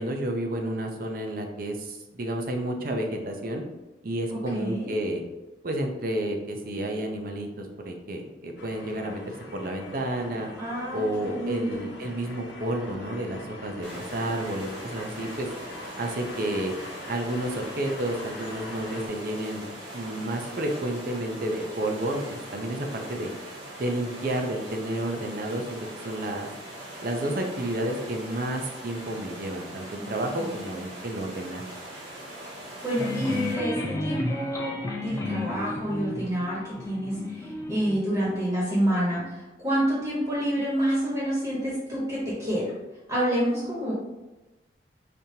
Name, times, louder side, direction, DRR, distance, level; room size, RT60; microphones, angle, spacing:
voice 1, 0.0-3.6 4.0-5.2 5.6-10.5 10.9-15.5 16.0-16.7 17.1-19.7 19.9-23.3 23.8-25.8 26.0-26.5 27.0-31.6, right 1 dB, 50° right, 3 dB, 0.6 m, -31 dB
voice 2, 4.3-4.9 10.6-11.7 30.0-30.6 32.8-42.7 43.1-43.9, right 1 dB, 15° right, -8 dB, 1.3 m, -28 dB
sound 1, 8.6-19.1, left 2 dB, 65° left, 0.8 m, -43 dB
sound 2, 13.8-33.5, right 1 dB, 70° right, 1.5 m, -41 dB
sound 3, 33.0-37.9, left 2 dB, 15° left, 0.5 m, -32 dB
5.1 x 2.9 x 2.8 m, 1.0 s
head